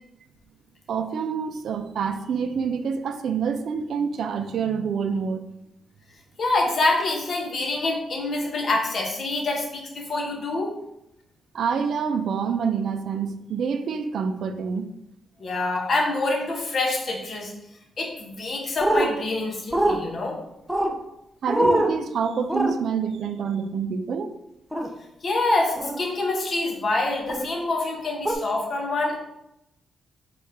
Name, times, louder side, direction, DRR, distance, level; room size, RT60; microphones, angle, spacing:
voice 1, 0.9-5.4 11.5-14.9 21.4-24.4, right 6 dB, 70° right, 9 dB, 0.4 m, -27 dB
voice 2, 6.4-10.7 15.4-17.5 18.0-20.4 25.2-29.2, left 2 dB, 50° left, 1 dB, 1.0 m, -26 dB
sound 1, 18.8-19.1 19.7-20.0 20.7-20.9 21.5-21.9 22.5-22.7 24.7-24.9 25.8-26.0 27.3-27.4 28.3-28.4, right 1 dB, 5° right, 0.5 m, -22 dB
4.5 x 2.4 x 4.7 m, 0.86 s
cardioid pair, 95°, 0 cm